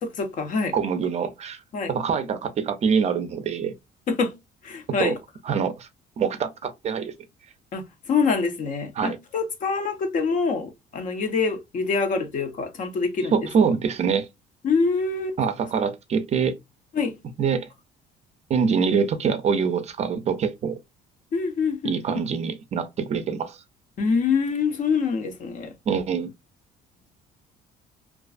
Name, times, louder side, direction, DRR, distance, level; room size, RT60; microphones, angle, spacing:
voice 1, 0.0-0.7 1.7-1.9 4.1-4.3 4.6-5.2 7.7-13.4 14.6-15.3 16.9-17.2 21.3-22.0 24.0-25.7, left 5 dB, 50° left, 0.6 m, -25 dB
voice 2, 0.7-1.6 1.9-3.7 5.0-5.2 5.4-5.9 6.2-7.1 9.0-9.2 13.3-14.3 15.4-16.6 17.4-17.7 18.5-20.7 21.8-23.6 25.9-26.3, right 6 dB, 40° right, 0.4 m, -24 dB
2.4 x 2.3 x 2.3 m
cardioid pair, 110°, 17 cm